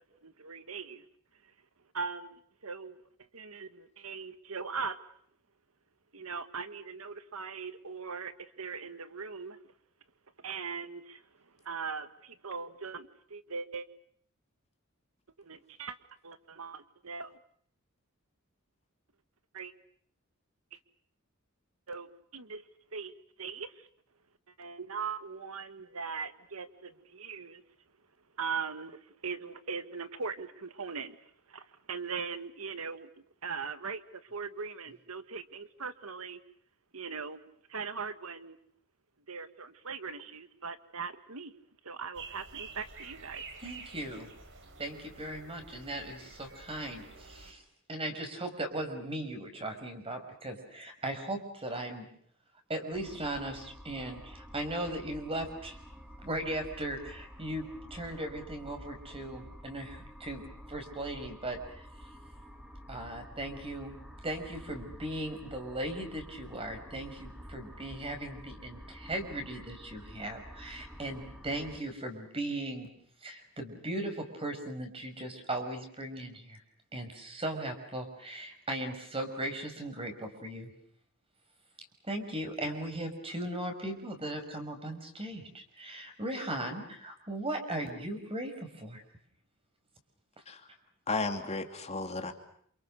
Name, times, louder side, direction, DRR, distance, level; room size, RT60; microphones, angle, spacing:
voice 1, 0.2-1.0 1.4-1.5 1.9-3.0 3.3-5.0 6.1-9.6 10.4-11.2 11.6-13.9 15.4-16.0 16.2-17.4 19.5-19.7 21.9-22.6 22.9-23.9 24.6-27.6 28.4-33.1 33.4-36.4 36.9-37.4 37.7-38.6 39.3-41.5 41.8-43.4, right 5 dB, 85° right, 1.5 m, -40 dB
sound 1, 42.1-47.5, right 4 dB, 60° right, 3.6 m, -49 dB
voice 2, 43.6-44.3 44.8-47.6 47.9-52.1 52.7-55.8 56.2-60.4 60.7-61.9 62.9-64.0 64.2-72.9 73.2-76.6 76.9-80.7 82.1-88.5 88.8-89.0, right 1 dB, 25° right, 5.7 m, -38 dB
sound 2, 52.9-71.8, equal, 5° right, 3.0 m, -49 dB
voice 3, 91.1-92.3, left 3 dB, 30° left, 2.8 m, -34 dB
28.5 x 28.5 x 6.6 m
head